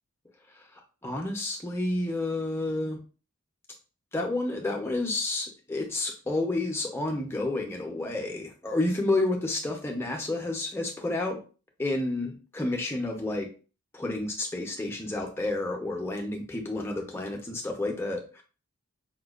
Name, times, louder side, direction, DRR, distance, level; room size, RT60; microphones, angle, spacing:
voice 1, 1.0-3.0 4.1-11.4 11.8-13.5 13.9-18.4, left 2 dB, 10° left, 1 dB, 0.6 m, -30 dB
5.0 x 2.3 x 2.3 m, 0.36 s
head